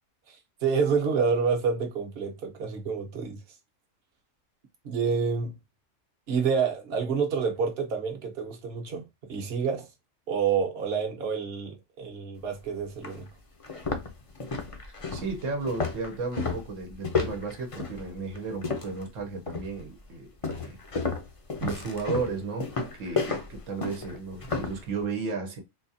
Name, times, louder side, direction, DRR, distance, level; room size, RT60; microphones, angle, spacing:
voice 1, 0.6-3.4 4.8-5.5 6.3-9.0 9.3-9.8 10.3-13.3, right 5 dB, 55° right, 1.1 m, -28 dB
sound 1, 12.4-12.5 13.0-13.2 13.6-19.1 19.5-19.9 20.4-24.8, left 4 dB, 35° left, 0.6 m, -32 dB
voice 2, 15.1-20.8 21.6-22.7 23.0-25.6, right 4 dB, 80° right, 1.2 m, -34 dB
4.0 x 2.4 x 2.7 m
omnidirectional pair, 1.3 m